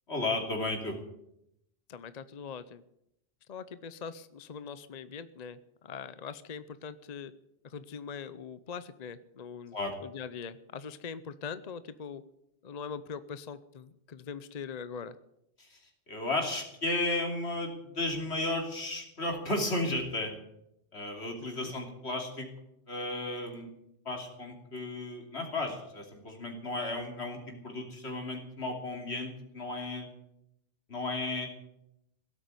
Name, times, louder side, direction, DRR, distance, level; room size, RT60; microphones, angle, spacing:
voice 1, 0.1-1.0 9.7-9.9 15.6-15.8 16.1-20.3 20.9-22.5 22.9-23.7 24.0-30.1 30.9-31.5, left 2 dB, 80° left, 3 dB, 3.4 m, -34 dB
voice 2, 1.9-2.8 3.5-7.3 7.6-9.8 10.0-12.2 12.6-15.2 21.5-21.7, left 6 dB, 45° left, 14 dB, 0.7 m, -42 dB
17.0 x 8.5 x 9.5 m, 0.80 s
omnidirectional pair, 1.1 m